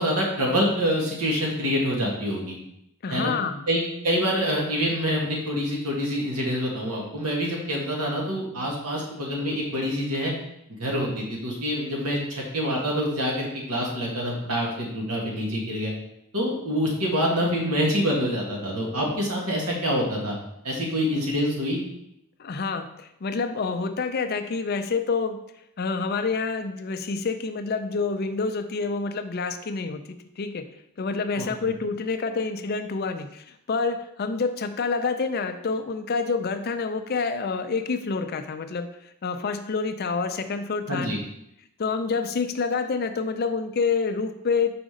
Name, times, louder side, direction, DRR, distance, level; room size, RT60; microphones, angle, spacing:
voice 1, 0.0-2.6 3.1-3.3 3.7-10.3 10.8-15.9 16.3-20.4 20.6-21.8 31.4-31.7 40.9-41.2, equal, 90° right, -2 dB, 1.7 m, -26 dB
voice 2, 3.0-3.7 22.4-25.4 25.8-30.0 30.4-30.6 31.0-38.9 39.2-41.2 41.8-44.8, left 4 dB, 45° left, 9 dB, 0.4 m, -27 dB
5.1 x 5.0 x 3.8 m, 0.79 s
head